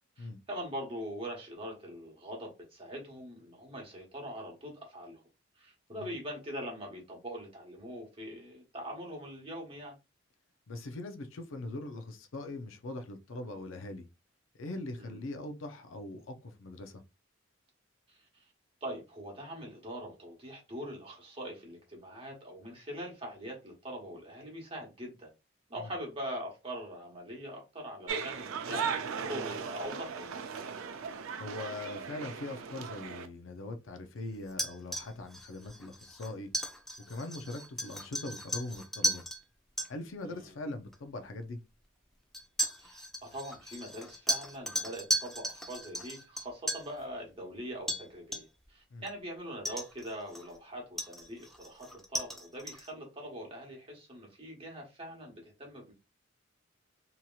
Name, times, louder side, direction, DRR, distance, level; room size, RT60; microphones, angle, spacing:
voice 1, 0.2-5.2 5.6-9.9 15.0-15.2 18.1-18.4 18.8-25.3 25.7-30.4 40.3-40.5 42.8-55.9, equal, 25° right, 1.1 m, -43 dB
voice 2, 10.7-14.0 14.6-17.0 25.8-25.9 31.4-36.5 37.1-39.2 39.9-41.6 48.9-49.1, left 2 dB, 70° left, 0.5 m, -41 dB
sound 1, 28.1-33.3, right 6 dB, 85° right, 0.5 m, -37 dB
sound 2, 34.5-39.4 39.8-39.9 40.9-41.0 42.3-46.9 47.9-48.1 48.3-48.7 49.1-49.2 49.7-50.6 51.0-52.9, equal, ahead, 0.3 m, -36 dB
2.8 x 2.8 x 2.3 m
head